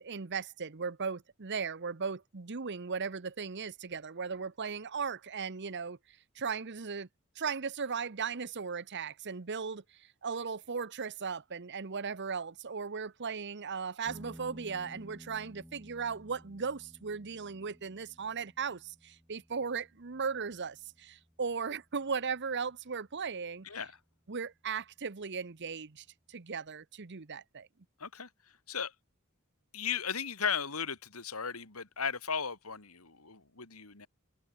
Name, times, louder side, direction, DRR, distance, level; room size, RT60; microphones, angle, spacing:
voice 1, 0.0-7.1 7.4-23.7 24.3-27.7, right 5 dB, 55° right, 0.9 m, -37 dB
sound 1, 14.0-23.1, equal, 5° right, 3.0 m, -55 dB
voice 2, 29.7-34.1, left 6 dB, 85° left, 3.4 m, -36 dB
head